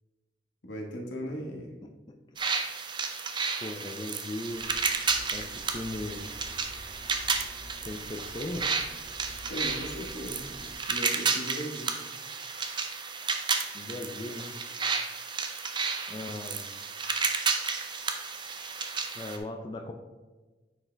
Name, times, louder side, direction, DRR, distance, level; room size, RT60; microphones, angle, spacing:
voice 1, 0.6-1.7 9.5-10.5 10.9-11.9, equal, 80° left, 0 dB, 1.4 m, -37 dB
sound 1, 2.4-19.4, right 5 dB, 25° right, 0.6 m, -32 dB
voice 2, 3.6-4.7 5.3-5.5 5.7-6.2 7.8-8.7 13.7-14.6 16.1-16.7 19.1-19.9, left 2 dB, 25° left, 3 dB, 0.4 m, -37 dB
sound 2, 4.5-10.7, equal, 80° right, 2.5 m, -48 dB
9.6 x 4.8 x 3.3 m, 1.2 s
head